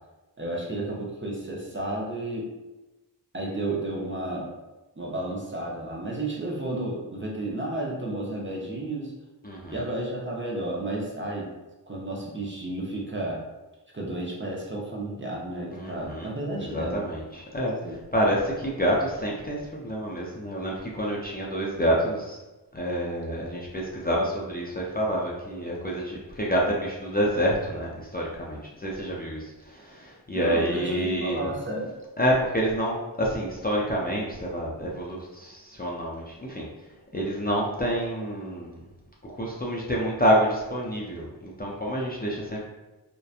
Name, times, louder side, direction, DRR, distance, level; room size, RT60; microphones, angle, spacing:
voice 1, 0.4-2.5 3.3-4.5 5.0-9.1 9.7-11.5 11.9-13.4 13.9-17.0 17.8-18.0 30.3-31.9, right 1 dB, 30° right, -3 dB, 0.5 m, -32 dB
voice 2, 9.4-9.8 15.7-16.3 16.6-17.8 18.1-22.4 22.7-31.5 32.2-36.6 37.1-38.8 39.4-42.6, equal, 25° left, -4 dB, 0.4 m, -28 dB
2.7 x 2.1 x 2.3 m, 1.1 s
wide cardioid pair, 55°, 42 cm